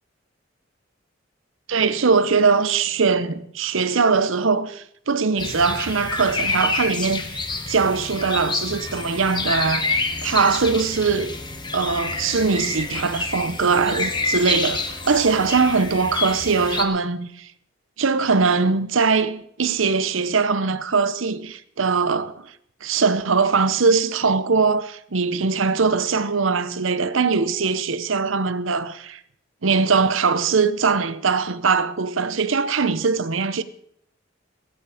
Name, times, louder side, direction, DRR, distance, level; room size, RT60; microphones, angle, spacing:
voice 1, 1.7-11.3 11.7-17.5 18.0-22.5 22.8-29.2 29.6-33.6, right 4 dB, 85° right, 0.9 m, -21 dB
sound 1, 5.4-16.8, left 3 dB, 25° left, 1.3 m, -28 dB
16.5 x 13.5 x 5.0 m
head